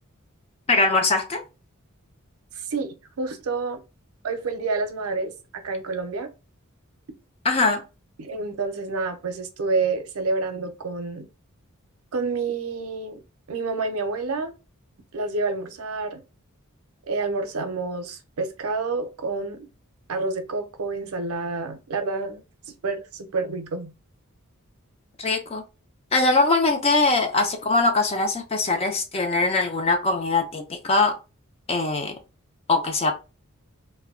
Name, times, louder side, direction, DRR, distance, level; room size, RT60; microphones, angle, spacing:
voice 1, 0.7-1.4 7.4-7.8 25.2-25.6 26.1-31.1 31.7-32.1 32.7-33.1, left 3 dB, 30° left, 0.5 m, -22 dB
voice 2, 2.6-3.8 4.2-5.3 5.6-6.3 8.2-11.3 12.1-13.2 13.5-14.5 15.1-16.2 17.1-19.7 20.1-22.4 22.8-23.9, right 3 dB, 85° right, 0.6 m, -28 dB
2.2 x 2.1 x 3.6 m
head